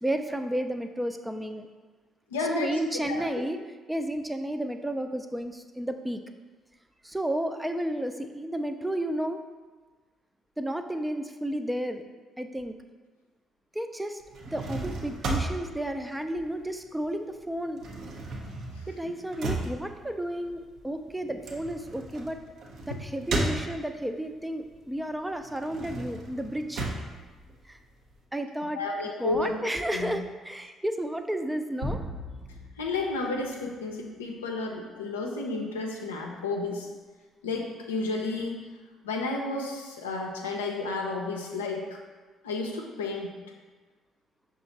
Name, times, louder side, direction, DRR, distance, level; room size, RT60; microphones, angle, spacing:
voice 1, 0.0-1.7 2.5-3.6 3.9-6.2 7.0-9.4 10.6-12.0 12.4-12.7 13.7-14.2 14.5-17.8 18.9-22.4 22.9-26.8 27.7-27.8 28.3-28.8 29.2-32.0, right 1 dB, 10° right, 7 dB, 0.4 m, -32 dB
voice 2, 2.3-2.8 3.1-3.2 18.8-19.1 22.9-23.0 28.8-29.5 29.9-30.1 32.8-36.9 37.4-38.6 39.0-42.0 42.4-43.3, left 3 dB, 90° left, 1 dB, 0.5 m, -32 dB
sound 1, 14.2-17.1 17.3-24.2 24.6-28.2, right 2 dB, 60° right, 0.7 m, -35 dB
sound 2, 31.8-33.8, equal, 85° right, 1.1 m, -37 dB
5.7 x 2.4 x 3.9 m, 1.3 s
hypercardioid pair, 50°, 0 cm